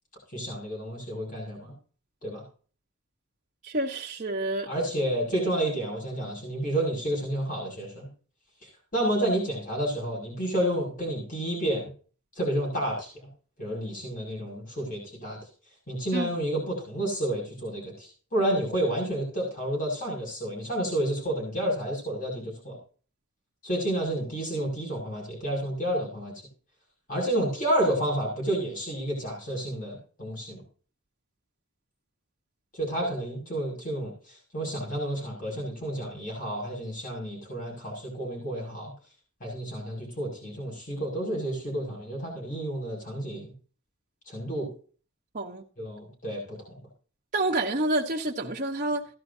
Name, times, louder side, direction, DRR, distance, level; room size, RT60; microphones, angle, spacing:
voice 1, 0.3-1.7 2.2-2.4 4.7-8.1 8.9-11.9 12.3-13.3 13.6-15.4 15.9-22.8 23.6-26.3 27.1-30.6 32.7-34.1 34.5-38.9 39.4-43.5 44.3-44.7 45.8-46.6, right 1 dB, 40° left, 6.5 m, -30 dB
voice 2, 3.6-4.7 16.1-16.3 45.3-45.6 47.3-49.1, right 2 dB, 35° right, 1.2 m, -28 dB
16.0 x 12.0 x 2.8 m
head